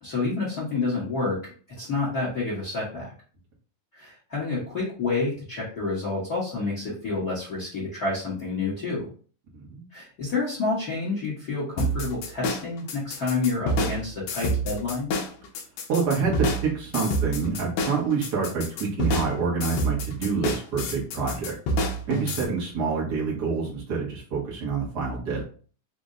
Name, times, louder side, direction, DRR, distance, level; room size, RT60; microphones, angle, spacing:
voice 1, 0.0-1.5 1.8-3.1 3.9-9.1 9.9-15.1, left 3 dB, 60° left, -7 dB, 1.0 m, -29 dB
voice 2, 9.5-9.9 15.9-21.5 22.1-25.4, right 5 dB, 80° right, -3 dB, 0.9 m, -27 dB
sound 1, 11.8-22.4, right 1 dB, 75° left, 1.6 m, -28 dB
5.1 x 2.1 x 3.7 m, 0.41 s
omnidirectional pair, 3.7 m